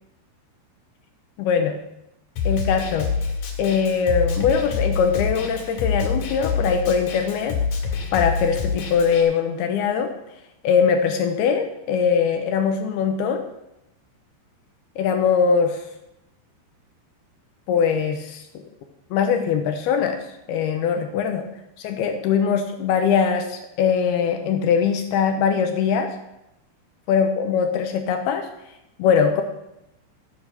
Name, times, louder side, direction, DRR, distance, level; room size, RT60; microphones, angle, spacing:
voice 1, 1.4-1.8 2.5-3.1 3.6-7.6 7.8-10.1 10.6-13.4 15.0-15.8 17.7-18.4 19.1-21.5 21.8-26.2 27.1-28.5 29.0-29.4, left 6 dB, 80° left, 6 dB, 2.4 m, -21 dB
Snare drum, 2.4-9.2, left 5 dB, 55° left, 3.1 m, -26 dB
15.5 x 8.3 x 6.4 m, 0.87 s
omnidirectional pair, 5.5 m